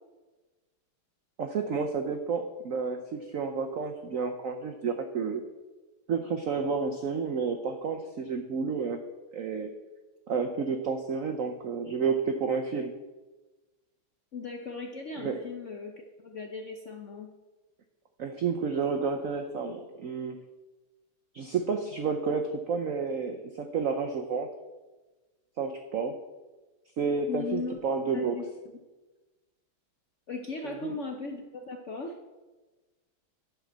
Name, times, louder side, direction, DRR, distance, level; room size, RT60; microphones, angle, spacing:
voice 1, 1.4-5.4 6.1-9.0 9.3-9.7 10.3-12.9 15.2-15.4 18.2-20.4 21.3-24.5 25.6-26.2 27.0-28.3 30.6-31.0, right 5 dB, 85° right, 5 dB, 0.7 m, -30 dB
voice 2, 14.3-17.3 27.3-27.8 28.1-28.5 30.3-32.1, left 4 dB, 65° left, 3 dB, 0.7 m, -37 dB
11.5 x 5.1 x 7.3 m, 1.2 s
omnidirectional pair, 2.3 m